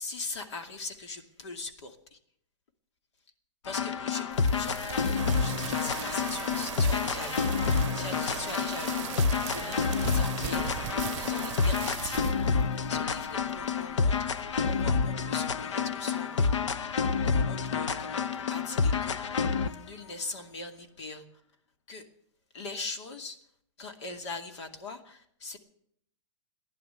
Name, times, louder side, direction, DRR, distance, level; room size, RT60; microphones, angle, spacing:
voice 1, 0.0-2.2 3.6-19.4 19.6-21.2 21.9-22.1 22.5-23.4 23.8-25.6, left 3 dB, 70° left, 6 dB, 2.4 m, -41 dB
sound 1, 3.7-19.8, left 5 dB, 90° left, 0.9 m, -28 dB
sound 2, 4.3-15.3, right 13 dB, 30° right, 0.6 m, -42 dB
sound 3, 5.1-12.0, right 10 dB, 85° right, 0.6 m, -40 dB
16.0 x 11.0 x 8.0 m, 0.69 s
hypercardioid pair, 170°, 15 cm